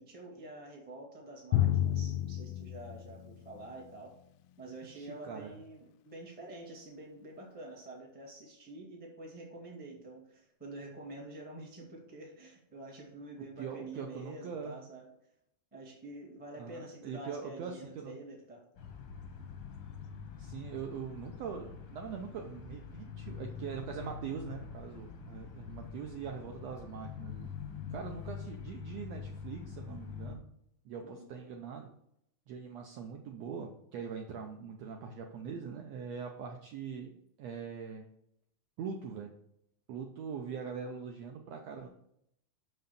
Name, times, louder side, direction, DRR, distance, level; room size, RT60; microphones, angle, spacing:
voice 1, 0.0-4.1 4.6-15.1 15.7-18.6 31.0-31.3, right 2 dB, 5° right, -1 dB, 0.7 m, -47 dB
Drum, 1.5-3.9, left 12 dB, 90° left, 1.6 m, -31 dB
voice 2, 4.8-5.5 13.6-14.8 16.6-18.1 20.4-27.5 27.9-30.4 30.8-31.9 32.5-37.1 37.4-38.1 38.8-39.3 39.9-41.9, right 6 dB, 75° right, 3 dB, 1.5 m, -42 dB
sound 1, 18.8-30.4, left 6 dB, 65° left, 1.2 m, -45 dB
6.1 x 5.4 x 6.7 m, 0.75 s
omnidirectional pair, 3.8 m